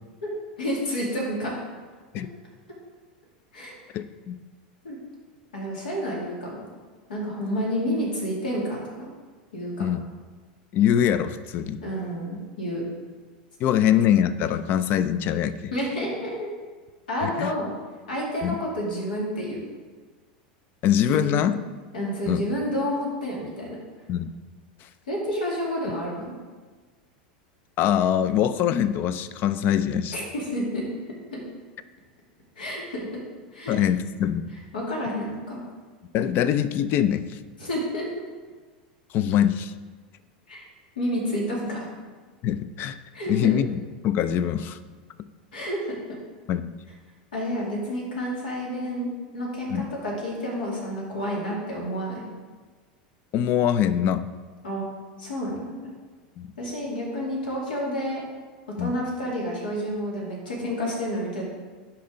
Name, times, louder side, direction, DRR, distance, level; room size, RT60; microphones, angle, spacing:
voice 1, 0.6-1.5 3.5-3.8 4.8-5.0 5.5-6.6 7.1-9.1 9.5-9.7 11.8-12.8 15.7-16.5 17.1-17.7 18.1-19.6 21.1-21.5 21.9-23.8 25.1-26.3 30.1-30.8 31.3-31.4 32.6-33.0 33.5-33.8 34.7-35.6 37.6-38.0 40.5-40.6 41.0-41.8 43.1-43.5 45.5-45.9 47.3-52.2 54.6-54.8 55.2-55.9 56.6-58.2 58.8-61.4, equal, 90° left, -4 dB, 2.4 m, -29 dB
voice 2, 3.9-4.4 9.8-10.1 10.7-11.8 13.6-15.7 17.2-17.5 18.4-18.6 20.8-21.6 22.3-22.5 24.1-24.3 27.8-30.2 33.7-34.5 36.1-37.4 39.1-39.7 42.4-43.0 43.3-44.8 46.5-46.7 49.7-49.9 53.3-54.2 56.4-56.5 58.8-59.0, left 10 dB, 45° left, 13 dB, 0.4 m, -23 dB
11.0 x 4.3 x 3.8 m, 1.4 s
hypercardioid pair, 100°, 5 cm